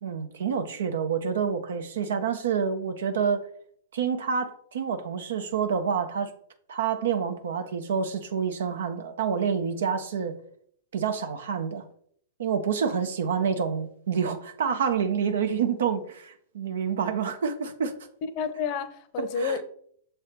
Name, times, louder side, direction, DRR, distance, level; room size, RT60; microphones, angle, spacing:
voice 1, 0.0-3.4 3.9-6.3 6.7-10.4 10.9-11.8 12.4-17.9 19.4-19.6, right 6 dB, 75° right, 0.6 m, -28 dB
voice 2, 18.2-19.6, left 5 dB, 45° left, 0.7 m, -30 dB
6.6 x 3.4 x 4.3 m
hypercardioid pair, 115°, 0 cm